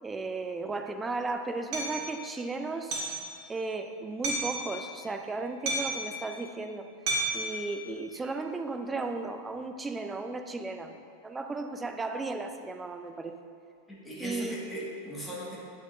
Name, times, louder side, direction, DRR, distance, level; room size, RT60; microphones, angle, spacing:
voice 1, 0.0-3.0 3.5-6.9 7.3-13.3 14.2-14.6, right 3 dB, 15° right, 6 dB, 0.5 m, -35 dB
Hammer, 1.7-1.9 2.9-3.2 4.2-4.6 5.7-6.1 7.1-7.4, right 2 dB, 45° right, 1.9 m, -30 dB
voice 2, 13.9-15.6, right 1 dB, 5° left, -6 dB, 1.9 m, -38 dB
9.2 x 8.6 x 2.7 m, 2.3 s
figure-of-eight pair, 90°, 0 cm